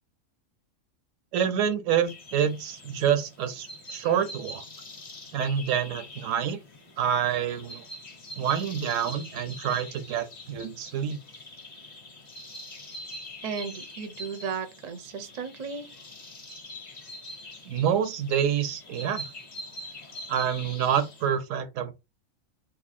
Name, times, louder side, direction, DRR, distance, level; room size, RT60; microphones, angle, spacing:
voice 1, 1.3-4.6 5.3-6.6 7.0-7.8 8.4-11.2 17.6-19.3 20.3-21.9, right 8 dB, 80° right, 1.0 m, -27 dB
sound 1, 2.0-21.3, left 1 dB, 40° left, 0.8 m, -44 dB
voice 2, 13.4-15.9, right 6 dB, 50° right, 0.5 m, -35 dB
2.7 x 2.7 x 4.1 m
omnidirectional pair, 1.4 m